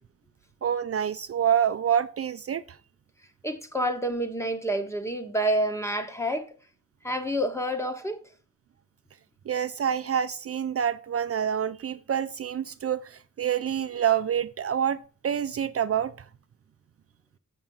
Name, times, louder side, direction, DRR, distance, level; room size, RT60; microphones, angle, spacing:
voice 1, 0.6-2.8 9.5-16.3, right 9 dB, 55° right, 0.5 m, -27 dB
voice 2, 3.4-6.5 7.0-8.2, right 1 dB, 10° left, 1.2 m, -28 dB
7.3 x 6.2 x 5.5 m
wide cardioid pair, 165°, 29 cm